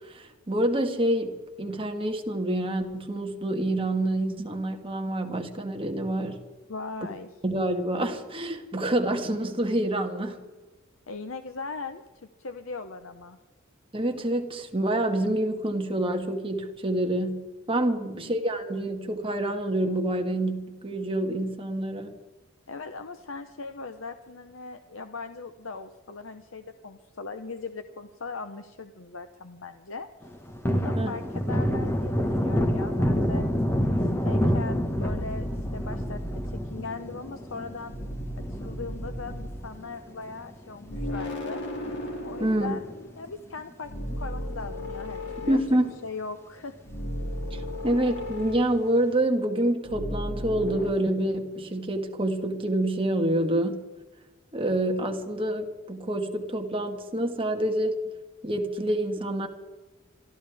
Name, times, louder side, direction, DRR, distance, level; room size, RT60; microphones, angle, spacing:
voice 1, 0.0-6.4 7.4-10.4 13.9-22.1 31.0-31.2 42.4-42.8 45.5-45.9 47.5-53.8 54.5-57.9 58.4-59.5, right 1 dB, 25° right, 4 dB, 1.7 m, -27 dB
voice 2, 6.7-7.3 11.1-13.4 18.0-18.3 22.7-30.1 30.7-33.5 34.0-35.5 35.7-36.2 36.5-37.9 38.5-41.7 42.2-42.9 43.2-45.6 46.0-46.7, left 4 dB, 80° left, 7 dB, 0.9 m, -39 dB
Thunder, 30.2-41.0 41.3-41.4 41.8-43.3 43.6-43.7 44.1-44.9 45.3-45.4 45.7-45.8 48.2-48.7, equal, 15° left, 1.5 m, -28 dB
sound 1, 34.8-36.7 37.8-39.8 40.8-43.3 43.8-46.2 46.8-49.1 49.8-50.9, left 1 dB, 60° left, 2.9 m, -35 dB
26.5 x 14.0 x 3.5 m, 1.2 s
head